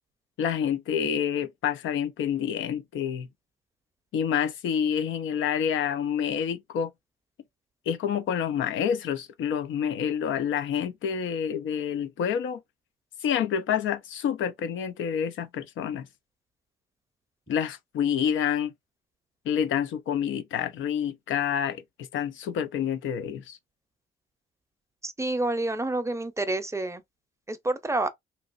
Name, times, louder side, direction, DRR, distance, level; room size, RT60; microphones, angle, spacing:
voice 1, 0.4-3.3 4.1-6.9 7.9-12.6 13.2-16.1 17.5-18.7 19.5-21.8 22.1-23.6, left 8 dB, 75° left, 0.6 m, -28 dB
voice 2, 25.0-27.0 27.5-28.1, right 2 dB, 15° right, 0.6 m, -28 dB
3.0 x 2.8 x 2.5 m
cardioid pair, 90°, 20 cm